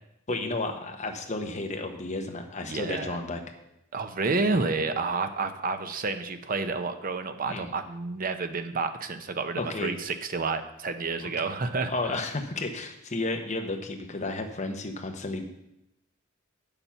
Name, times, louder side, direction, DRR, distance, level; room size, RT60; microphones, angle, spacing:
voice 1, 0.3-3.4 4.4-4.6 7.5-7.7 9.6-9.9 11.2-11.4 11.9-15.5, left 2 dB, 35° left, 4 dB, 1.1 m, -32 dB
voice 2, 2.6-3.2 3.9-12.2, right 3 dB, 45° right, 9 dB, 0.7 m, -30 dB
8.6 x 7.1 x 5.7 m, 0.86 s
head